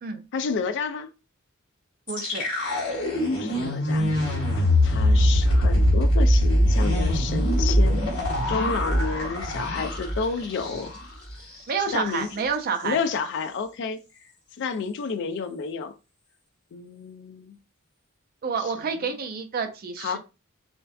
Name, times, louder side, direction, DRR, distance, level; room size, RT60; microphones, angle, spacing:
voice 1, 0.3-1.1 3.3-10.9 11.9-12.3 12.8-14.0 14.6-15.9 16.7-17.6 18.7-18.9 20.0-20.2, left 5 dB, 55° left, 0.3 m, -31 dB
sound 1, 2.1-11.1 11.4-11.6 11.9-12.3, left 1 dB, 75° left, 1.3 m, -22 dB
voice 2, 2.1-2.5 8.6-8.7 11.7-13.0 18.4-20.2, right 5 dB, 45° right, 0.4 m, -29 dB
2.5 x 2.2 x 2.2 m
head